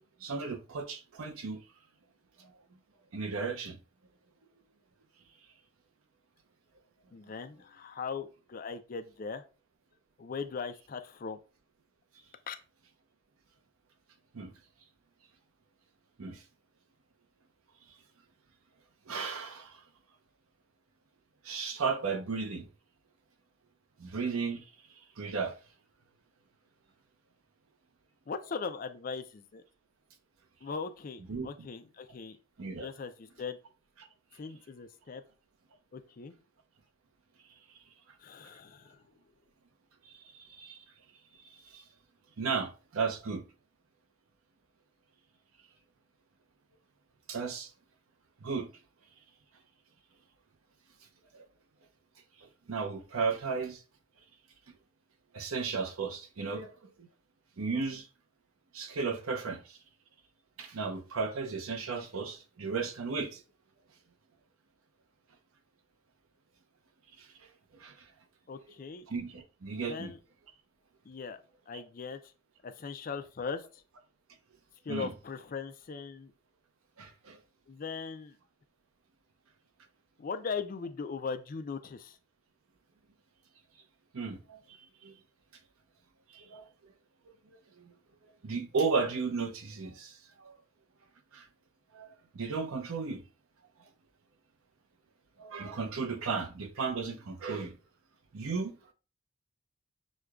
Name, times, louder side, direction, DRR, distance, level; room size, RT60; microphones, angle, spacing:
voice 1, 0.0-1.6 2.4-2.5 3.1-3.8 14.3-14.5 16.2-16.4 19.1-19.8 21.4-22.7 24.0-24.7 25.2-25.6 31.3-31.5 32.6-32.9 40.0-40.8 41.4-41.8 42.4-43.4 47.3-47.7 48.4-48.7 51.3-51.4 52.4-53.8 55.3-57.1 57.6-58.1 58.7-59.8 60.6-63.4 67.2-67.5 67.8-68.1 69.1-70.1 71.7-71.8 74.9-75.1 77.0-77.4 84.1-85.1 86.3-86.7 87.8-87.9 88.4-90.6 91.3-91.5 91.9-93.2 95.4-97.8 98.3-98.9, right 4 dB, 85° right, 0.7 m, -35 dB
voice 2, 7.1-9.4 10.2-11.4 12.5-12.6 28.3-29.6 30.6-32.4 32.8-33.6 34.4-35.2 35.9-36.3 38.2-39.0 68.5-69.1 69.9-70.2 71.1-71.4 71.7-72.3 72.6-73.8 74.8-76.3 77.7-78.4 80.2-82.2, left 5 dB, 40° left, 0.4 m, -39 dB
6.3 x 2.2 x 2.3 m
head